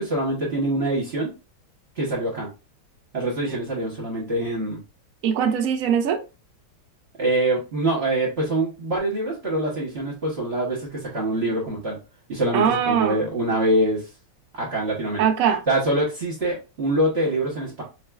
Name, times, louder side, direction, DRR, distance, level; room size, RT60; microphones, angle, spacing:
voice 1, 0.0-1.3 2.0-2.5 3.1-4.8 7.2-12.0 12.3-14.1 14.5-15.2 15.7-17.8, right 1 dB, 40° right, 1.0 m, -24 dB
voice 2, 5.2-6.2 12.5-13.2 15.2-15.6, right 8 dB, 75° right, 0.7 m, -21 dB
4.5 x 2.4 x 2.2 m
omnidirectional pair, 2.0 m